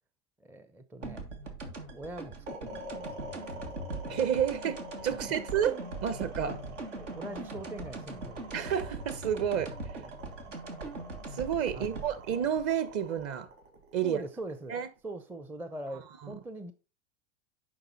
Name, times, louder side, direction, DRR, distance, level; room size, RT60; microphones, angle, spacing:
voice 1, 0.4-1.3 1.9-3.7 5.1-5.2 6.5-6.6 7.0-8.7 10.0-10.6 11.7-12.0 14.0-14.8 15.0-16.7, right 1 dB, 5° right, 0.5 m, -43 dB
sound 1, 1.0-13.8, right 3 dB, 85° right, 1.7 m, -41 dB
sound 2, 2.5-14.7, equal, 55° right, 4.3 m, -46 dB
voice 2, 4.1-6.6 8.5-9.8 11.3-13.5 13.9-14.2 14.7-14.9 16.2-16.4, right 9 dB, 40° right, 1.0 m, -30 dB
9.9 x 3.9 x 4.0 m
hypercardioid pair, 90°, 36 cm